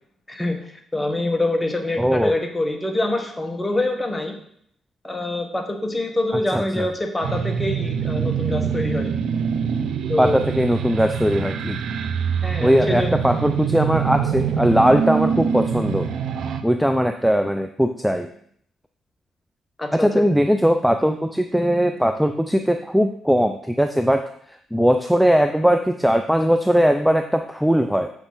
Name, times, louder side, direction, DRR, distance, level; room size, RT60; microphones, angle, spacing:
voice 1, 0.3-4.3 5.0-9.1 10.1-10.4 12.4-13.1 19.8-20.2, left 1 dB, 15° left, 3 dB, 1.3 m, -25 dB
voice 2, 2.0-2.3 6.5-6.9 10.2-11.8 12.6-16.1 16.6-18.3 19.9-24.2 24.7-28.1, equal, ahead, 7 dB, 0.5 m, -19 dB
sound 1, 7.2-16.6, right 6 dB, 70° right, 0.6 m, -24 dB
7.3 x 6.0 x 4.0 m, 0.65 s
cardioid pair, 90°, 0 cm